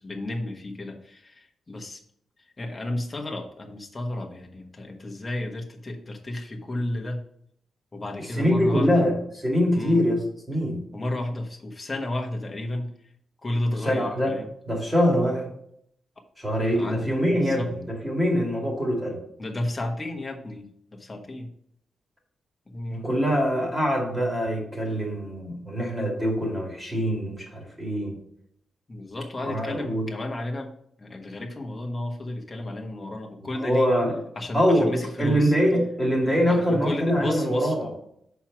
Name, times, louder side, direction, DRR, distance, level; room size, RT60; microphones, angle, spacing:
voice 1, 0.0-2.0 2.6-7.2 7.9-9.0 9.7-10.0 10.9-12.9 13.4-14.5 16.7-17.1 17.4-17.7 19.4-21.5 22.7-23.1 28.9-30.7 31.0-33.9 34.4-35.5 36.5-37.7, left 1 dB, 20° left, 1 dB, 1.2 m, -32 dB
voice 2, 8.3-10.8 13.8-14.3 14.7-15.5 16.4-19.2 22.9-28.2 29.4-30.1 33.5-34.2 34.5-37.9, equal, 10° right, -1 dB, 2.4 m, -24 dB
6.8 x 4.6 x 5.9 m, 0.70 s
wide cardioid pair, 155°, 0 cm